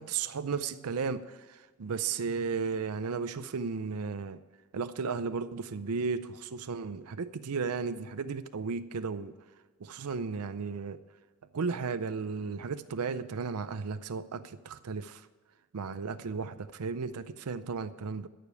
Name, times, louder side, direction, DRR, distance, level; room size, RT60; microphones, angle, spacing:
voice 1, 0.0-4.4 4.7-9.3 9.8-11.0 11.5-15.3 15.7-18.3, right 5 dB, 85° right, 12 dB, 0.6 m, -34 dB
13.5 x 5.1 x 8.2 m, 1.3 s
head